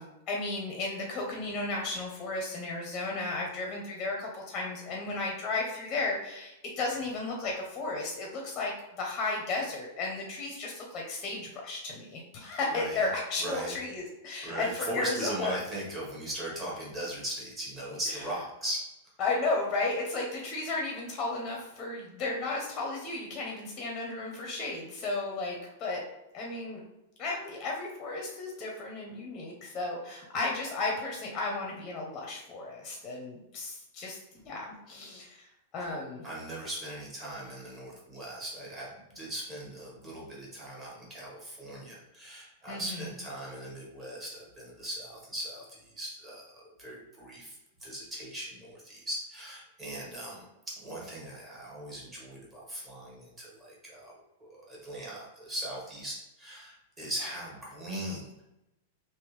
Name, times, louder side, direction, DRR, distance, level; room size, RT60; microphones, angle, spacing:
voice 1, 0.0-15.5 18.1-18.2 19.2-26.0 26.3-26.8 27.2-34.2 34.4-35.4 35.7-36.2 42.7-43.1, left 3 dB, 20° left, -1 dB, 0.8 m, -34 dB
voice 2, 12.4-13.1 13.4-13.7 14.4-18.8 36.2-45.6 46.0-50.4 50.8-54.1 54.4-58.3, right 1 dB, 15° right, -5 dB, 1.4 m, -39 dB
3.5 x 2.9 x 3.2 m, 0.91 s
supercardioid pair, 155°, 0 cm